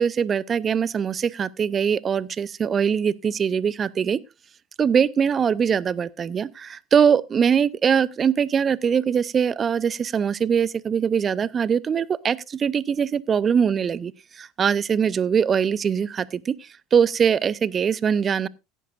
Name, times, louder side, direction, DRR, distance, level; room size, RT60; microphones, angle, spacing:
voice 1, 0.0-4.2 4.8-14.1 14.4-16.5 16.9-18.5, right 7 dB, 30° right, 0.6 m, -22 dB
17.0 x 10.0 x 2.5 m
hypercardioid pair, 75°, 0 cm